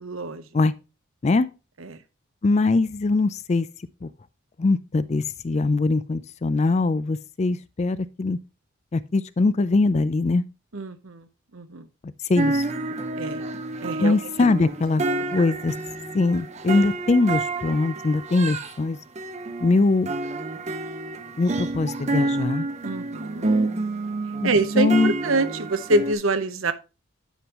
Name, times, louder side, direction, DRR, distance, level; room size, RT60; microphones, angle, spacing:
voice 1, 0.0-0.5 1.8-2.0 10.7-11.3 11.5-11.9 13.2-13.4 13.8-14.5 22.8-23.7 24.4-26.7, right 2 dB, 80° right, 0.9 m, -26 dB
voice 2, 2.4-3.7 4.0-4.1 4.6-8.4 8.9-10.4 12.0-12.6 14.0-15.0 15.3-15.7 16.1-19.0 19.6-20.1 21.4-22.7 24.4-24.5 24.8-25.1, left 3 dB, 30° left, 0.4 m, -22 dB
sound 1, 12.3-18.8 19.1-26.1, right 2 dB, 35° right, 0.7 m, -29 dB
10.0 x 5.3 x 3.0 m
head